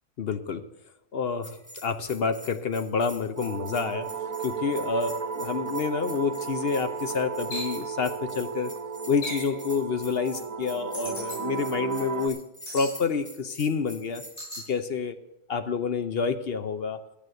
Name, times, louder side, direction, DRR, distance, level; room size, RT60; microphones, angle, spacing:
voice 1, 0.2-0.7 1.1-4.1 4.4-8.7 9.1-12.4 12.7-14.2 14.7-15.2 15.5-17.0, left 5 dB, 55° left, 10 dB, 0.7 m, -28 dB
Bell, 1.4-14.6, equal, 5° right, 2.0 m, -46 dB
sound 1, 3.4-12.3, right 6 dB, 60° right, 1.2 m, -34 dB
sound 2, 7.5-7.8 9.2-9.5 10.9-11.4 12.6-13.0 14.4-14.7, left 1 dB, 85° left, 4.5 m, -36 dB
11.5 x 7.9 x 7.8 m, 0.92 s
omnidirectional pair, 1.7 m